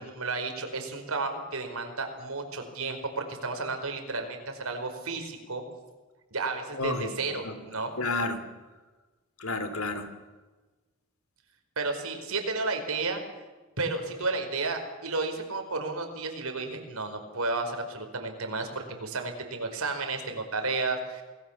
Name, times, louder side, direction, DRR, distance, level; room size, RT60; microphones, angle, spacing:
voice 1, 0.0-5.6 6.3-7.9 11.8-13.2 13.8-21.2, right 3 dB, 85° right, 5 dB, 4.9 m, -32 dB
voice 2, 6.7-7.1 7.4-7.5 8.0-8.4 9.4-10.1, left 3 dB, 80° left, 10 dB, 3.0 m, -30 dB
28.5 x 19.5 x 7.3 m, 1.2 s
head